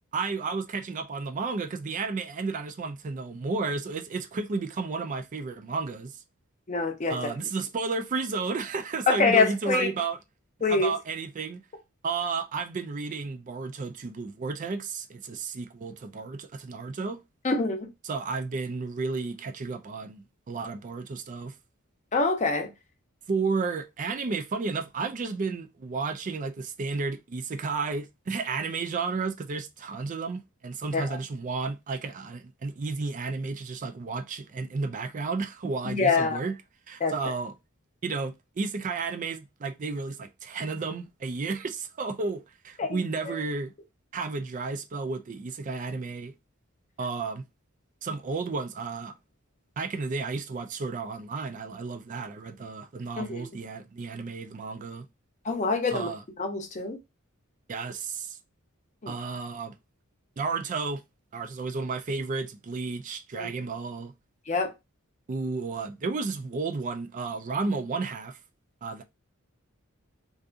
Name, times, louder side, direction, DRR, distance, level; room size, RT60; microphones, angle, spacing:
voice 1, 0.1-6.2 7.1-10.2 10.7-11.6 12.0-17.2 18.0-21.5 23.3-36.6 36.9-37.5 38.0-43.7 44.1-46.3 47.0-47.4 48.0-49.1 49.8-55.1 55.9-56.2 57.7-58.4 59.1-59.7 60.4-61.0 61.3-64.1 65.3-68.4 68.8-69.0, right 4 dB, 35° right, 0.4 m, -32 dB
voice 2, 6.7-7.3 9.1-9.9 10.6-10.9 17.4-17.9 22.1-22.7 30.9-31.2 35.8-36.4 37.0-37.1 42.8-43.0 43.3-43.4 53.2-53.5 55.4-56.1 56.4-57.0 59.0-59.1 63.4-63.5 64.5-64.7, left 4 dB, 35° left, 0.6 m, -25 dB
2.6 x 2.4 x 2.4 m
head